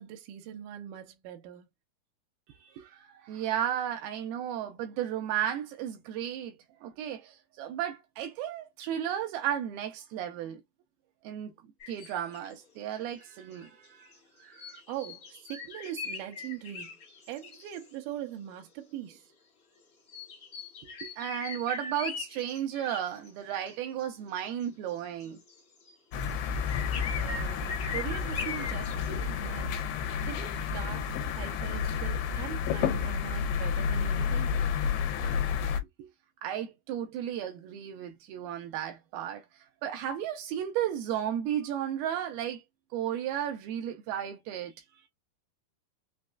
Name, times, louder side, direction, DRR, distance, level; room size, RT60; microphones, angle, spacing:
voice 1, 0.0-1.7 14.9-16.9 17.3-19.2 27.2-29.8 30.3-34.5, right 11 dB, 70° right, 2.3 m, -41 dB
voice 2, 2.6-10.6 11.2-11.5 11.9-14.1 14.4-14.8 21.0-25.4 36.0-36.1 36.4-39.5 39.8-42.6 42.9-45.0, right 10 dB, 85° right, 2.5 m, -34 dB
sound 1, 11.8-12.5 13.1-14.1 14.6-17.9 20.1-23.3 23.7-23.8 24.0-24.1 24.4-25.6 25.9-29.1, left 5 dB, 70° left, 0.8 m, -41 dB
sound 2, 26.1-35.8, left 6 dB, 85° left, 2.7 m, -30 dB
6.3 x 2.3 x 2.3 m
omnidirectional pair, 4.5 m